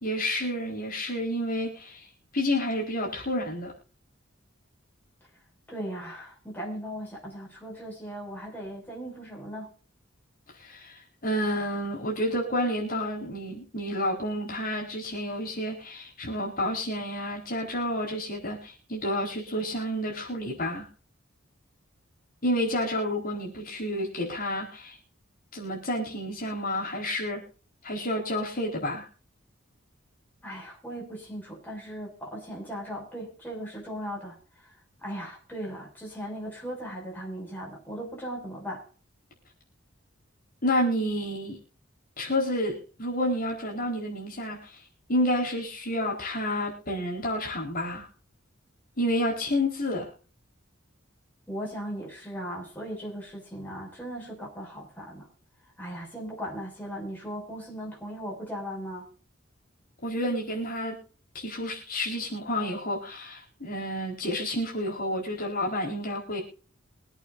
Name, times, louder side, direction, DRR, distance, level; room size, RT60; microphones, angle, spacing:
voice 1, 0.0-2.0 2.3-3.7 10.6-20.9 22.4-25.0 25.5-27.4 27.8-29.1 40.6-41.6 42.2-44.8 45.1-48.1 49.0-50.1 60.0-61.0 61.3-66.4, left 1 dB, 45° left, 4.4 m, -30 dB
voice 2, 5.7-9.7 30.4-34.4 35.0-38.8 51.5-55.3 55.8-59.1, equal, 10° left, 6.5 m, -38 dB
24.0 x 8.7 x 2.6 m
head